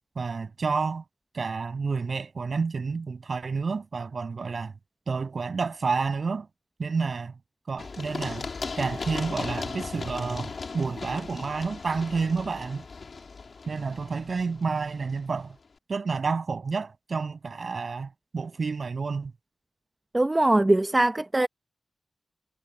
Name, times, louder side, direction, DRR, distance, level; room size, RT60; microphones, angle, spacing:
voice 1, 0.2-1.0 1.3-4.7 5.1-6.5 6.8-7.4 7.7-8.5 8.8-12.8 13.7-15.6 15.9-19.3, right 4 dB, 60° right, 7.9 m, -30 dB
Run, 7.8-15.4, left 4 dB, 60° left, 2.5 m, -37 dB
voice 2, 20.1-21.5, right 2 dB, 20° right, 0.8 m, -21 dB
wide cardioid pair, 110°, 0 cm